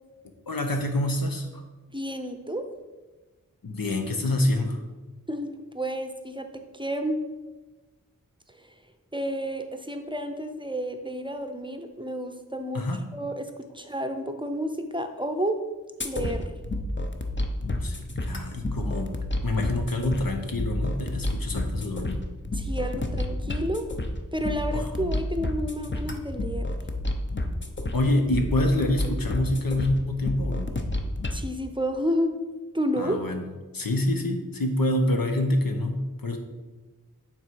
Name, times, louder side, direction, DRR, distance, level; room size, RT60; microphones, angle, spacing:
voice 1, 0.5-1.6 3.6-4.8 12.7-13.0 17.6-19.1 19.4-22.2 24.7-25.1 27.9-30.7 33.0-33.4 33.7-36.4, left 1 dB, 80° left, 4 dB, 1.0 m, -26 dB
voice 2, 1.9-2.6 5.3-6.4 6.7-7.2 9.1-12.8 13.1-15.6 16.0-16.5 22.5-23.9 24.3-26.7 31.3-32.4 32.7-33.2, equal, 15° right, 6 dB, 0.6 m, -30 dB
sound 1, 16.0-31.4, left 1 dB, 35° left, 0.7 m, -30 dB
9.0 x 3.8 x 4.6 m, 1.2 s
wide cardioid pair, 55°, 34 cm